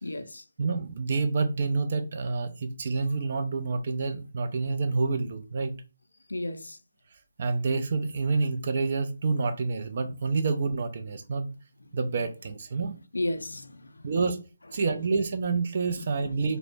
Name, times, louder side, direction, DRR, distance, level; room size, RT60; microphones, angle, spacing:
voice 1, 0.0-0.4 6.3-6.8 13.1-14.0 16.0-16.4, left 1 dB, 80° left, 0.3 m, -34 dB
voice 2, 0.6-5.8 7.4-11.5 11.9-13.0 14.0-14.4 14.7-16.6, right 4 dB, 50° right, 0.4 m, -28 dB
2.1 x 2.0 x 3.1 m
figure-of-eight pair, 150°, 0 cm